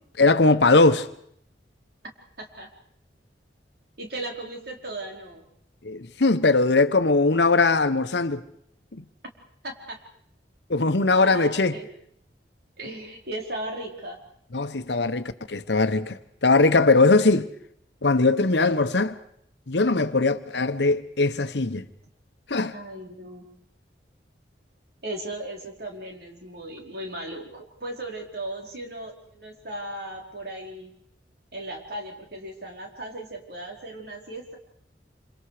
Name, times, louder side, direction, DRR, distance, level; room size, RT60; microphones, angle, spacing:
voice 1, 0.2-1.1 5.8-8.4 9.0-9.1 10.7-11.8 14.5-17.5 18.0-19.2 19.7-21.9 22.5-22.7, left 3 dB, 75° left, 1.1 m, -20 dB
voice 2, 2.4-2.7 4.0-5.4 9.6-10.0 11.1-11.9 12.8-14.2 22.7-23.5 25.0-30.9 31.5-34.6, right 1 dB, 60° right, 4.6 m, -37 dB
27.0 x 26.5 x 5.0 m
head